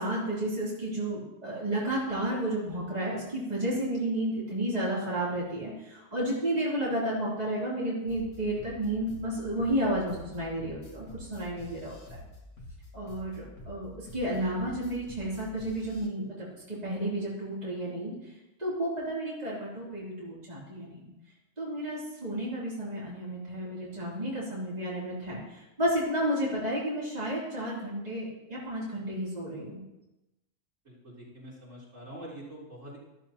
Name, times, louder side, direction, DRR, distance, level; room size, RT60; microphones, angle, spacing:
voice 1, 0.0-12.2 12.9-18.1 18.6-21.0 21.6-29.8, right 1 dB, 30° right, -7 dB, 3.2 m, -32 dB
sound 1, 8.1-16.1, left 1 dB, 75° left, 2.2 m, -47 dB
voice 2, 30.9-33.0, right 1 dB, 60° right, -7 dB, 4.0 m, -45 dB
13.5 x 13.0 x 2.9 m, 0.95 s
omnidirectional pair, 1.3 m